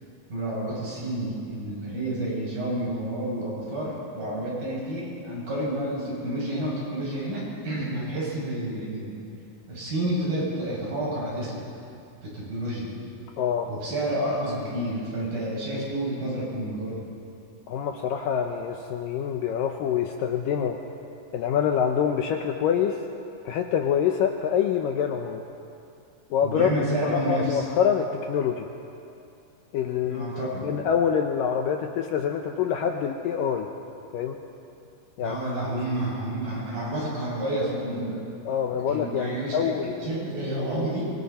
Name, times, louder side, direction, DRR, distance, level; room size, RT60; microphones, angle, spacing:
voice 1, 0.3-9.2 9.7-11.7 12.2-13.0 13.7-17.0 26.4-27.7 30.0-30.7 35.2-38.2 38.7-41.1, right 1 dB, 60° right, -6 dB, 8.8 m, -30 dB
voice 2, 13.4-13.7 17.7-20.8 21.3-23.0 23.4-25.5 26.3-26.7 27.1-28.7 29.7-33.7 34.1-34.4 35.2-35.4 38.5-40.0, left 8 dB, 75° left, 3 dB, 2.1 m, -26 dB
25.5 x 24.0 x 4.3 m, 2.6 s
omnidirectional pair, 4.7 m